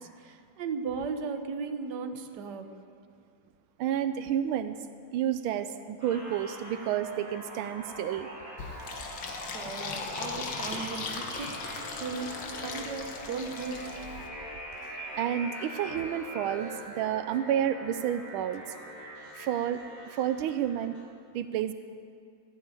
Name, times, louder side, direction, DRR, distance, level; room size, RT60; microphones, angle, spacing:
voice 1, 0.0-2.8 9.5-11.6 12.0-13.9, right 5 dB, 60° right, 6 dB, 1.5 m, -37 dB
voice 2, 3.8-4.8 5.1-8.3 14.8-18.6 19.3-19.8 20.1-21.0 21.3-21.7, right 10 dB, 85° right, 11 dB, 1.5 m, -30 dB
sound 1, 6.0-21.0, equal, 20° right, 4.6 m, -43 dB
Fill (with liquid), 8.6-14.3, left 5 dB, 75° left, 2.1 m, -38 dB
15.0 x 9.0 x 9.1 m, 2.3 s
omnidirectional pair, 2.2 m